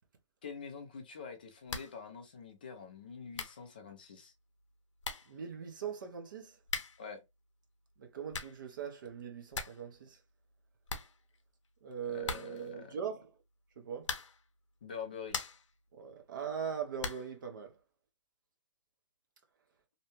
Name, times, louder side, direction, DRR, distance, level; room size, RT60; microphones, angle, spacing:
voice 1, 0.4-4.3 7.0-7.2 12.1-12.9 14.8-15.4, left 6 dB, 20° left, 0.3 m, -46 dB
sound 1, 1.7-2.0 2.3-2.4 3.0-3.1 3.3-3.7 4.6-4.7 5.0-5.4 6.6-7.1 8.0-8.7 9.0-9.1 9.3-9.9 10.1-10.2 10.5-10.6 10.9-11.7 12.2-12.7 14.0-14.5 15.0-15.7 17.0-17.4, left 4 dB, 70° left, 0.6 m, -41 dB
voice 2, 5.3-6.6 8.0-10.2 11.8-13.3 13.8-14.1 15.9-17.8, right 7 dB, 40° right, 0.6 m, -41 dB
2.7 x 2.1 x 2.9 m
hypercardioid pair, 165°, 16 cm